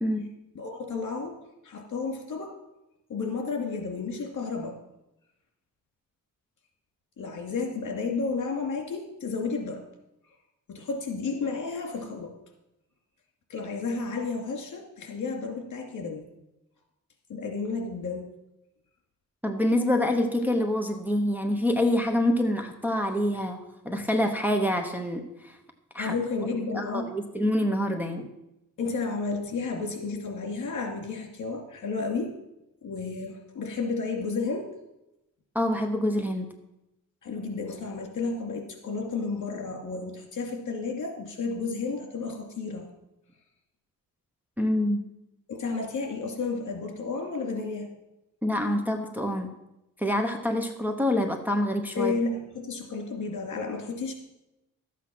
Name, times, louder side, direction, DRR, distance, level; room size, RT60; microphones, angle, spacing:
voice 1, 0.5-1.4 1.6-2.6 3.1-4.8 7.2-9.8 10.7-12.3 13.5-16.2 17.3-18.3 23.3-23.4 26.0-27.1 28.8-32.4 32.8-34.8 37.2-42.9 45.5-47.9 51.9-54.1, left 4 dB, 65° left, 3 dB, 2.5 m, -32 dB
voice 2, 19.4-25.6 25.9-26.1 26.7-28.3 35.5-36.5 44.6-45.0 48.4-49.5 50.0-52.1, left 1 dB, 5° right, 3 dB, 0.9 m, -26 dB
12.5 x 8.4 x 5.9 m, 0.90 s
wide cardioid pair, 155°, 33 cm